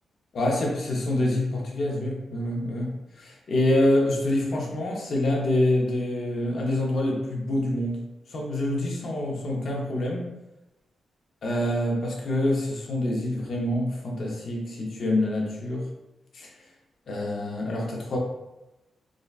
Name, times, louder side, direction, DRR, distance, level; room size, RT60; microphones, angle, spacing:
voice 1, 0.3-8.0 8.3-10.3 11.4-15.9 16.3-16.5 17.1-18.2, left 1 dB, 55° left, -1 dB, 0.6 m, -26 dB
3.7 x 2.1 x 2.4 m, 0.97 s
wide cardioid pair, 160°, 0 cm